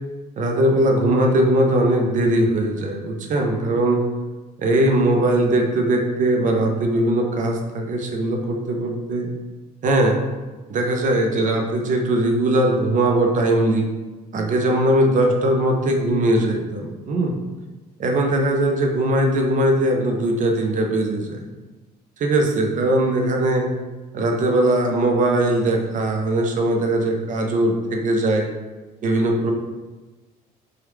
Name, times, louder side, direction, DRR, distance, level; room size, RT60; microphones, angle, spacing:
voice 1, 0.4-4.0 4.6-9.3 9.8-10.2 10.7-13.9 14.3-17.4 18.0-21.4 22.2-23.7 24.1-28.5 29.0-29.5, right 1 dB, 50° right, 2 dB, 0.6 m, -20 dB
3.0 x 2.3 x 3.2 m, 1.2 s
cardioid pair, 110°, 17 cm